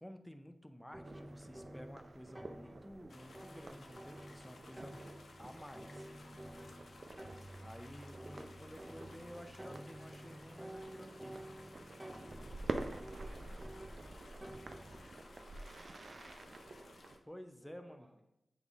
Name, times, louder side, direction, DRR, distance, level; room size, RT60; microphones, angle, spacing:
voice 1, 0.0-5.1 5.4-6.1 7.6-11.5 17.3-18.1, equal, 10° left, 8 dB, 0.6 m, -52 dB
sound 1, 0.9-15.1, right 1 dB, 20° right, 0.9 m, -52 dB
sound 2, 1.0-17.2, right 2 dB, 65° right, 0.5 m, -49 dB
sound 3, 3.1-17.2, left 3 dB, 80° left, 0.6 m, -59 dB
voice 2, 12.8-16.9 17.6-18.2, right 1 dB, 40° right, -2 dB, 1.7 m, -68 dB
8.2 x 3.5 x 3.6 m, 0.86 s
cardioid pair, 50°, 0 cm